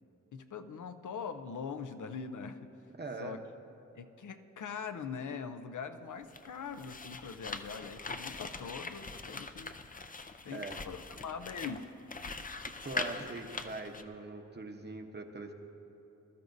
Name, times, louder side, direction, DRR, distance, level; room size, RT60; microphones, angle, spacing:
voice 1, 0.3-2.7 3.2-3.4 3.9-9.7 10.4-11.9, left 6 dB, 75° left, 9 dB, 0.6 m, -42 dB
voice 2, 2.9-3.4 10.5-10.8 12.6-15.5, right 3 dB, 35° right, 4 dB, 0.9 m, -42 dB
sound 1, 6.2-14.0, left 3 dB, 30° left, 0.4 m, -42 dB
20.5 x 12.5 x 2.6 m, 2.9 s
wide cardioid pair, 120°, 30 cm